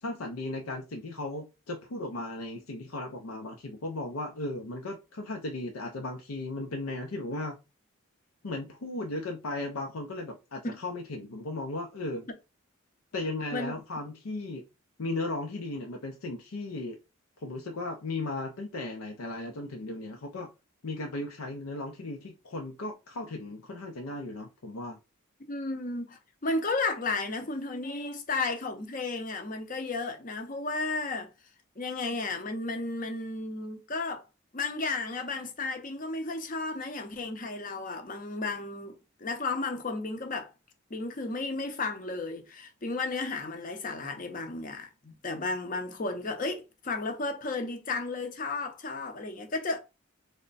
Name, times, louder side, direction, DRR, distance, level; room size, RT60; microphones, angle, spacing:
voice 1, 0.0-7.6 8.4-12.3 13.1-14.6 15.0-17.0 17.4-20.5 20.8-25.0, left 2 dB, 85° left, 0.6 m, -36 dB
voice 2, 25.5-31.3 31.8-34.2 34.5-40.5 40.9-49.8, left 3 dB, 40° left, 0.6 m, -33 dB
3.3 x 2.1 x 3.9 m
head